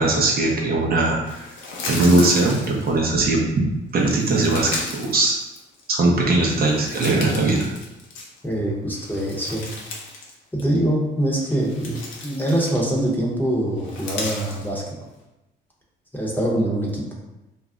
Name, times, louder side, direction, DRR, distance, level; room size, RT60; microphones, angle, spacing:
voice 1, 0.0-1.4 1.9-3.6 3.9-5.4 5.9-7.7, right 2 dB, 50° right, -2 dB, 0.6 m, -20 dB
sound 1, 1.2-3.2 4.0-6.0 6.4-8.5 8.9-10.3 10.6-10.8 11.4-13.1 13.8-14.7, left 3 dB, 85° left, 0.7 m, -35 dB
voice 2, 8.4-9.7 10.5-12.0 12.2-14.8 16.1-17.0, right 1 dB, 10° left, -3 dB, 0.7 m, -23 dB
2.3 x 2.0 x 3.6 m, 0.98 s
cardioid pair, 90°, 20 cm